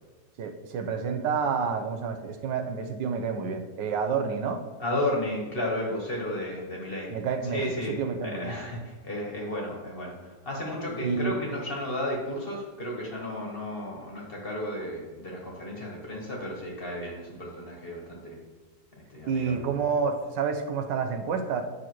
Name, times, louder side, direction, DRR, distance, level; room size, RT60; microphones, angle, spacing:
voice 1, 0.4-4.6 7.1-8.5 11.0-11.3 19.3-21.6, right 6 dB, 80° right, 5 dB, 1.4 m, -29 dB
voice 2, 4.8-7.1 7.5-18.4 19.1-19.7, left 1 dB, 35° left, -2 dB, 1.5 m, -33 dB
9.2 x 6.3 x 3.0 m, 1.3 s
omnidirectional pair, 1.9 m